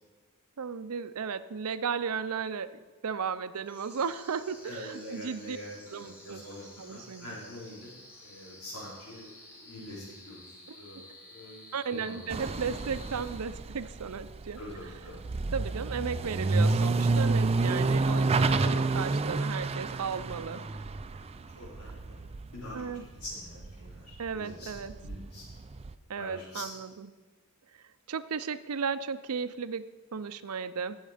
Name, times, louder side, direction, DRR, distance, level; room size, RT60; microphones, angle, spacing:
voice 1, 0.6-5.6 5.9-6.4 6.8-7.4 10.7-11.0 11.7-14.9 15.5-20.6 21.9-22.0 22.7-23.1 24.2-24.9 26.1-27.1 28.1-29.8 30.1-31.0, right 6 dB, 85° right, 14 dB, 0.6 m, -35 dB
sound 1, 3.6-13.9, left 1 dB, 10° left, 2.6 m, -52 dB
voice 2, 4.6-7.9 8.2-9.3 9.6-10.4 10.7-11.7 12.0-12.3 14.6-15.2 21.6-22.2 22.5-22.9 23.2-25.4 26.2-26.7, left 1 dB, 90° left, -7 dB, 4.0 m, -44 dB
sound 2, 12.3-23.3 23.6-25.9, right 3 dB, 30° right, 0.4 m, -29 dB
17.5 x 6.5 x 5.0 m, 1.3 s
head